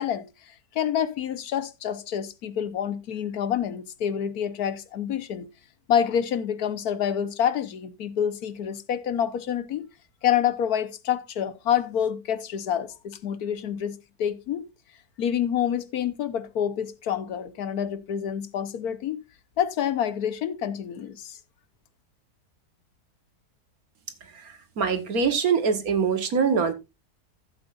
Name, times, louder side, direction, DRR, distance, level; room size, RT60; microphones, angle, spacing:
voice 1, 0.0-5.5 5.9-9.9 10.2-14.6 15.2-19.2 19.6-21.4, left 9 dB, 70° left, 1.4 m, -27 dB
voice 2, 24.3-26.7, right 5 dB, 60° right, 1.7 m, -24 dB
15.0 x 7.8 x 2.4 m
omnidirectional pair, 1.7 m